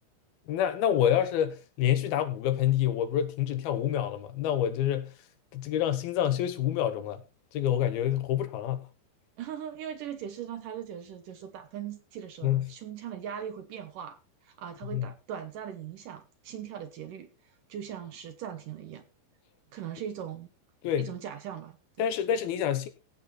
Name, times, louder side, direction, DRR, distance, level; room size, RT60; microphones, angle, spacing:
voice 1, 0.5-5.1 5.5-7.2 7.5-8.8 12.4-12.7 14.9-15.1 20.8-21.1 22.0-22.9, left 10 dB, 70° left, 2.5 m, -27 dB
voice 2, 9.4-17.3 17.7-19.0 19.7-20.5 21.0-22.1, right 9 dB, 75° right, 2.0 m, -40 dB
16.5 x 7.1 x 4.3 m
omnidirectional pair, 5.3 m